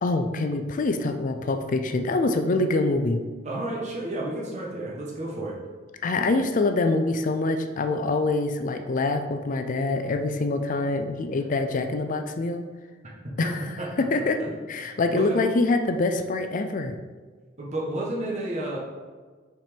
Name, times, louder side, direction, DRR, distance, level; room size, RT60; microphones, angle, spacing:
voice 1, 0.0-3.2 6.0-12.6 13.4-13.6 14.0-14.4 14.7-16.9, left 2 dB, 45° left, 7 dB, 0.5 m, -25 dB
voice 2, 3.4-5.5 13.4-13.5 13.8-13.9 14.4-14.5 15.1-15.5 17.6-18.8, right 1 dB, 35° right, -4 dB, 1.3 m, -31 dB
5.9 x 4.4 x 5.2 m, 1.5 s
head